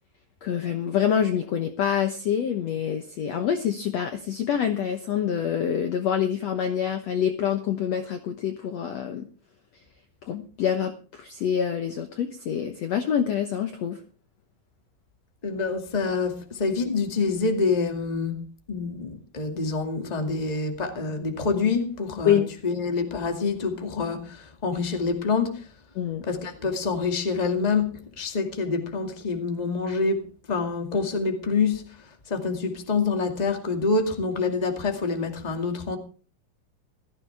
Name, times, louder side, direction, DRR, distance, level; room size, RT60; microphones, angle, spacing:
voice 1, 0.4-9.3 10.2-14.0 22.3-22.5 26.0-26.2, left 8 dB, 65° left, 1.7 m, -26 dB
voice 2, 15.4-18.4 18.7-25.6 26.3-31.9 32.3-36.0, left 4 dB, 15° left, 1.5 m, -26 dB
16.5 x 14.0 x 3.5 m
omnidirectional pair, 4.2 m